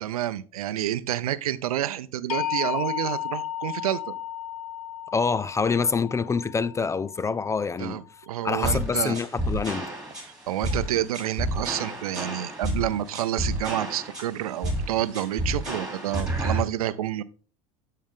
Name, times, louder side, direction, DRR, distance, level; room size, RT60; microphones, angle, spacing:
voice 1, 0.0-4.1 7.8-9.2 10.2-17.2, right 12 dB, 80° right, 0.6 m, -29 dB
sound 1, 2.3-8.3, left 11 dB, 80° left, 1.1 m, -34 dB
voice 2, 5.1-8.0 8.4-9.9, left 5 dB, 15° left, 0.3 m, -26 dB
sound 2, 8.6-16.6, right 1 dB, 5° right, 3.1 m, -30 dB
13.5 x 4.6 x 3.6 m
hypercardioid pair, 80°, 19 cm